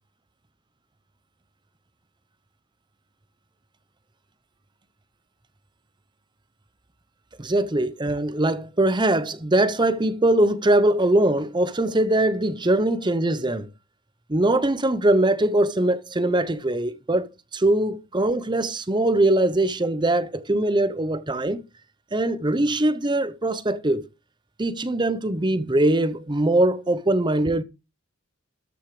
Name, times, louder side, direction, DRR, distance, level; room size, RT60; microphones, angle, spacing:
voice 1, 7.4-13.7 14.3-21.6 22.1-24.1 24.6-27.6, right 1 dB, 20° right, 0.8 m, -22 dB
13.5 x 6.4 x 5.0 m
head